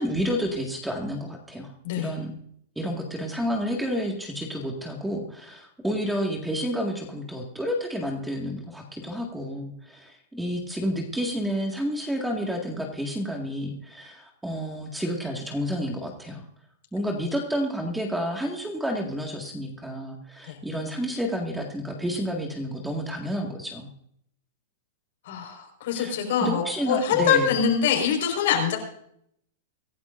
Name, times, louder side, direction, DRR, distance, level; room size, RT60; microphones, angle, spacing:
voice 1, 0.0-2.3 2.8-16.4 16.9-23.9 25.9-26.2 26.4-27.5, equal, 5° right, 1 dB, 2.0 m, -30 dB
voice 2, 25.2-28.8, left 7 dB, 65° left, 3 dB, 5.0 m, -24 dB
24.5 x 11.5 x 2.6 m, 0.69 s
supercardioid pair, 150°, 0 cm